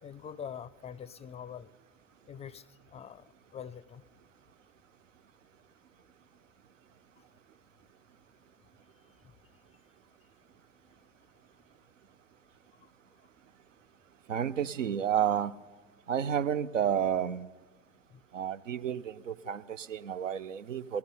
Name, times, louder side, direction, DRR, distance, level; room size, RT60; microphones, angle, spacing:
voice 1, 0.0-1.7 2.3-2.7 2.9-3.2 3.5-4.0 7.2-7.3 18.1-18.2 19.4-19.5, left 8 dB, 20° left, 18 dB, 0.4 m, -44 dB
voice 2, 14.3-15.5 16.1-17.5 18.3-21.0, right 9 dB, 85° right, 15 dB, 0.5 m, -31 dB
16.5 x 14.5 x 5.4 m, 1.3 s
figure-of-eight pair, 75°, 37 cm